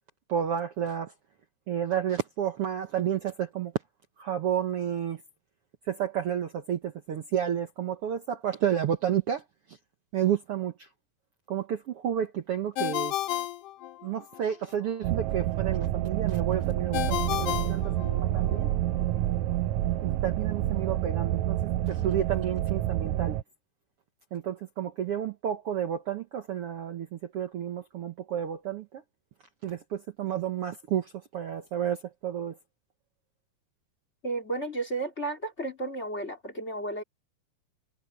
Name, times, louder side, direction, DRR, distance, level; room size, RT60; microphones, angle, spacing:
voice 1, 0.3-1.1 1.7-3.7 4.2-5.2 5.9-9.4 10.1-10.9 11.5-13.1 14.0-18.7 20.0-21.6 21.9-23.4 24.3-29.0 29.6-32.6, right 9 dB, 60° right, 1.7 m, -31 dB
Ringtone, 12.8-14.4 16.9-18.6, left 13 dB, 80° left, 2.5 m, -32 dB
sound 1, 15.0-23.4, right 13 dB, 75° right, 1.7 m, -28 dB
voice 2, 34.2-37.0, right 2 dB, 20° left, 2.8 m, -33 dB
omnidirectional pair, 3.7 m